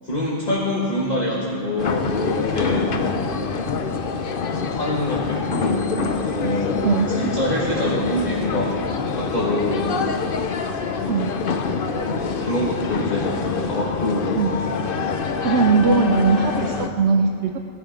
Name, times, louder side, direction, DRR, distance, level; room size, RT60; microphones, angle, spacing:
voice 1, 0.0-3.0 4.6-5.9 6.3-8.8 9.1-10.0 11.9-14.3, left 1 dB, 40° left, -5 dB, 1.8 m, -25 dB
sound 1, 1.8-16.9, left 5 dB, 55° left, 0.9 m, -25 dB
voice 2, 6.8-7.2 11.1-11.3 14.3-14.5 15.4-17.6, right 4 dB, 75° right, 5 dB, 1.0 m, -19 dB
18.0 x 12.5 x 5.1 m, 2.7 s
omnidirectional pair, 1.2 m